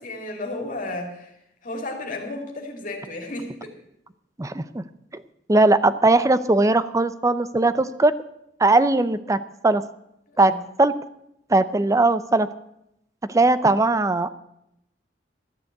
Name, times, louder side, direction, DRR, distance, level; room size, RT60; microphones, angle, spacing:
voice 1, 0.0-1.3 1.6-3.7 10.3-10.6, left 2 dB, 50° left, 2 dB, 2.9 m, -33 dB
voice 2, 4.4-4.8 5.1-5.2 5.5-8.1 8.6-9.4 9.6-9.8 10.4-10.5 10.8-10.9 11.5-12.5 13.3-14.3, right 2 dB, 20° right, 14 dB, 0.6 m, -19 dB
14.0 x 6.9 x 9.3 m, 0.82 s
head